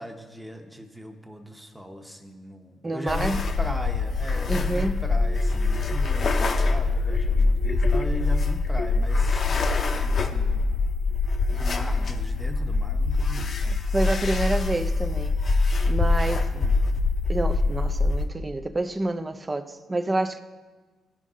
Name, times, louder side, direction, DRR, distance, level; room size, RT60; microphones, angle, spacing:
voice 1, 0.0-10.6 11.5-13.6 16.0-16.8, right 1 dB, 5° right, 4 dB, 1.0 m, -39 dB
voice 2, 2.8-3.4 4.5-5.0 13.6-15.4 15.9-16.5 17.3-20.4, right 2 dB, 20° right, 10 dB, 0.6 m, -28 dB
sound 1, 3.1-18.2, left 3 dB, 45° left, 0.7 m, -24 dB
15.5 x 5.3 x 3.7 m, 1.3 s
cardioid pair, 90°, 0 cm